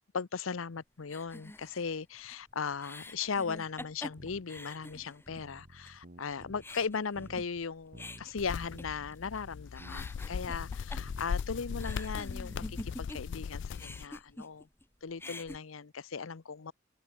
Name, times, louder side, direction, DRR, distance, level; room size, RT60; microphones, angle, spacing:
voice 1, 0.0-14.7 15.0-16.7, left 5 dB, 75° left, 0.7 m, -38 dB
sound 1, 1.1-5.5 5.8-5.9 6.3-9.4 9.7-13.4 13.7-14.8 15.1-15.6, left 1 dB, 10° left, 1.8 m, -47 dB
sound 2, 3.8-3.9 4.2-4.6 4.9-6.9 7.2-7.6 7.9-8.4 8.7-9.0 9.5-9.6 9.8-12.2 12.5-13.0, right 1 dB, 45° right, 1.9 m, -52 dB
sound 3, 8.4-14.0, left 6 dB, 60° left, 0.4 m, -38 dB
head